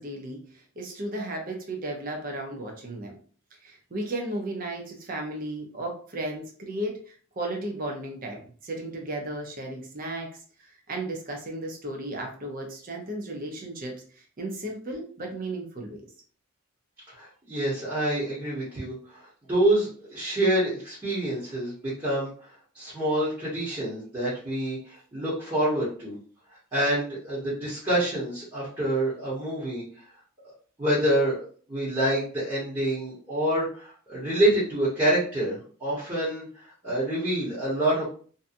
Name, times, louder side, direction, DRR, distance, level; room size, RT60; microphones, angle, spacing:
voice 1, 0.0-3.1 3.6-16.0, right 1 dB, 40° right, 2 dB, 0.6 m, -35 dB
voice 2, 17.1-19.2 19.5-22.3 22.7-26.2 26.7-29.8 30.8-36.5 36.8-38.1, right 1 dB, 20° right, -9 dB, 1.0 m, -27 dB
2.7 x 2.3 x 2.5 m, 0.43 s
head